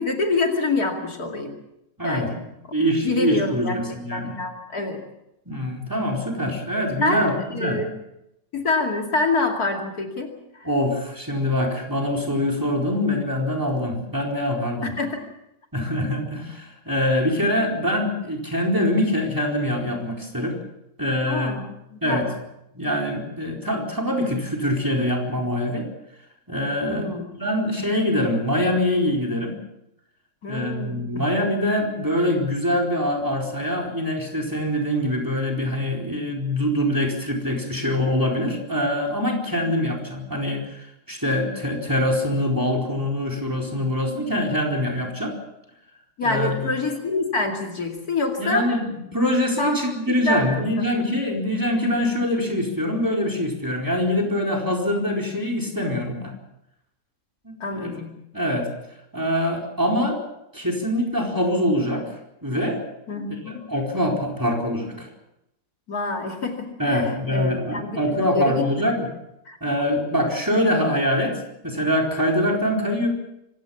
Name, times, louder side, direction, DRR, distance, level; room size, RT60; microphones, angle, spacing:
voice 1, 0.0-1.5 2.0-2.5 3.0-3.8 4.1-5.0 7.0-7.9 8.5-10.7 14.8-15.2 21.3-22.3 26.9-27.3 30.4-31.2 46.2-48.7 49.6-49.8 50.1-50.6 57.6-58.1 63.1-63.7 65.9-68.0 68.3-68.9 69.5-69.6, left 3 dB, 55° left, 2 dB, 3.0 m, -26 dB
voice 2, 2.0-2.3 2.7-4.3 5.5-7.8 10.6-14.9 15.7-20.6 21.0-21.6 22.0-22.3 22.7-25.9 26.5-29.6 30.5-45.3 46.2-46.7 48.4-56.3 57.4-58.0 58.3-58.7 59.1-60.2 60.5-62.2 62.4-62.8 63.5-65.1 66.8-69.1 69.6-73.1, left 1 dB, 10° right, 1 dB, 4.4 m, -24 dB
25.5 x 17.0 x 7.2 m, 0.85 s
omnidirectional pair, 1.9 m